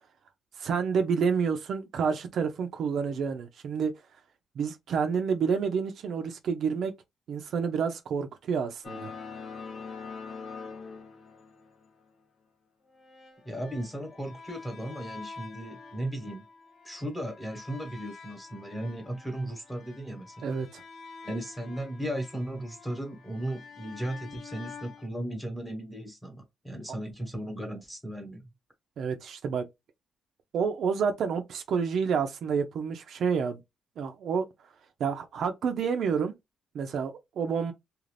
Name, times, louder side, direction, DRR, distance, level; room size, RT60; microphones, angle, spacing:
voice 1, 0.6-3.9 4.6-6.9 7.3-9.1 20.4-20.8 29.0-29.7 30.5-33.6 34.0-34.5 35.0-36.3 36.7-37.7, right 6 dB, 65° right, 0.5 m, -29 dB
sound 1, 8.8-12.0 12.9-25.1, left 5 dB, 45° left, 0.7 m, -46 dB
voice 2, 13.4-16.4 16.8-20.5 21.2-28.4, right 1 dB, ahead, 1.2 m, -36 dB
2.5 x 2.4 x 3.3 m
cardioid pair, 140°, 0 cm